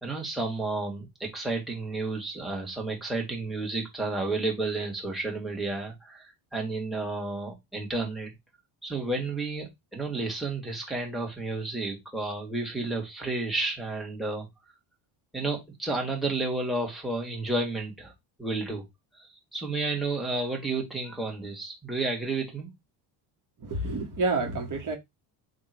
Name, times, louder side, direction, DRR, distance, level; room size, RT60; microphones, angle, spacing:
voice 1, 0.0-8.3 8.8-14.5 15.3-18.1 18.4-18.8 19.2-22.7, right 3 dB, ahead, 1.7 m, -31 dB
voice 2, 23.6-24.9, right 3 dB, 40° right, 1.4 m, -28 dB
3.5 x 2.6 x 4.4 m
cardioid pair, 100°, 48 cm